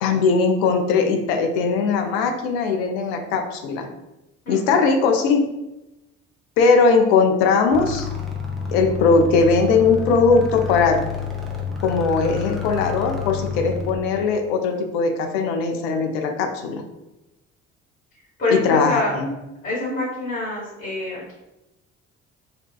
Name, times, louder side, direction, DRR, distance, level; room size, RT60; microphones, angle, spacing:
voice 1, 0.0-3.9 4.5-5.4 6.6-8.1 8.7-11.0 11.8-16.8 18.5-19.3, left 4 dB, 60° left, 5 dB, 0.5 m, -19 dB
voice 2, 4.4-4.8 18.4-19.2 19.6-21.3, left 2 dB, 30° left, -6 dB, 1.0 m, -25 dB
sound 1, 7.7-13.9, left 4 dB, ahead, 0.5 m, -29 dB
2.5 x 2.2 x 2.2 m, 0.96 s
figure-of-eight pair, 50°, 38 cm